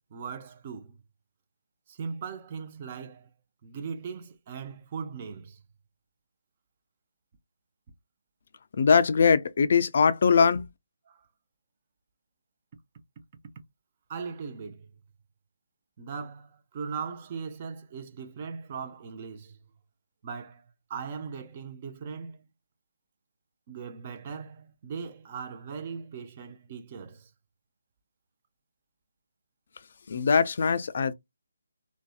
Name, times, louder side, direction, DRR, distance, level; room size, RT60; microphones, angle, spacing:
voice 1, 0.1-1.0 1.9-3.3 3.6-5.6 11.1-11.3 14.1-14.9 16.0-19.6 20.2-22.5 23.7-27.3, right 6 dB, 35° right, 0.5 m, -39 dB
voice 2, 8.8-10.6 30.1-31.1, left 6 dB, 50° left, 0.3 m, -21 dB
2.6 x 2.1 x 2.3 m
figure-of-eight pair, 155°, 0 cm